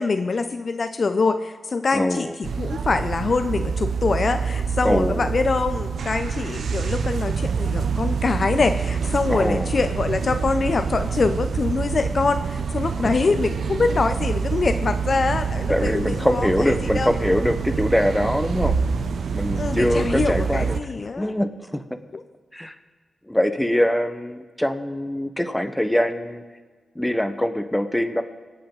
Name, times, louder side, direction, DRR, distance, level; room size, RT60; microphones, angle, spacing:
voice 1, 0.0-17.1 19.5-21.3 22.1-22.2, left 4 dB, 50° left, 9 dB, 0.6 m, -24 dB
voice 2, 1.9-2.4 4.8-5.3 9.3-9.7 13.0-13.4 15.7-18.7 19.3-20.7 21.2-21.8 22.5-22.7 23.3-26.4 26.9-28.2, left 1 dB, 5° left, 8 dB, 1.2 m, -23 dB
sound 1, 2.4-20.8, right 6 dB, 75° right, 0.7 m, -26 dB
25.5 x 8.5 x 3.9 m, 1.5 s
cardioid pair, 65°, 0 cm